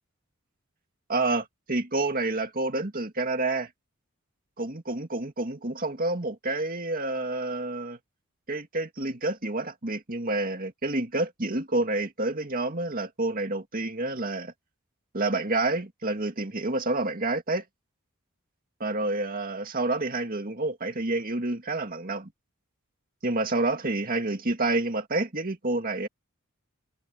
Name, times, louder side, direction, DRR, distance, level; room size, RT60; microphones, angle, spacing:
voice 1, 1.1-3.7 4.6-8.0 8.5-14.5 15.1-17.6 18.8-22.3 23.2-26.1, right 2 dB, 40° right, 2.2 m, -28 dB
head